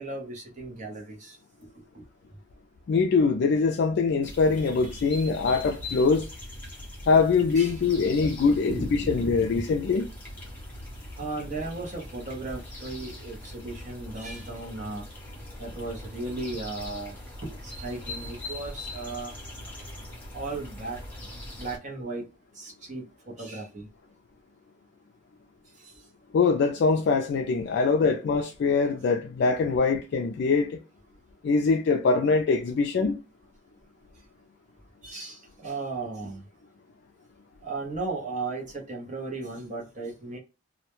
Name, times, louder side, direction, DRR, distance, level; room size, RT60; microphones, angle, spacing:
voice 1, 0.0-1.4 1.9-2.0 4.8-5.1 7.5-7.8 8.5-9.8 11.2-15.0 15.6-17.1 17.4-19.3 20.3-21.0 21.6-22.2 22.6-23.9 25.8-25.9 27.8-28.1 32.3-32.4 35.0-36.4 37.6-40.4, right 3 dB, 35° right, 0.7 m, -36 dB
voice 2, 2.9-6.3 7.1-8.8 9.1-10.1 26.3-30.8 31.4-33.2, left 4 dB, 55° left, 0.3 m, -23 dB
sound 1, 4.2-21.8, left 1 dB, 10° left, 0.8 m, -41 dB
2.2 x 2.1 x 2.9 m
head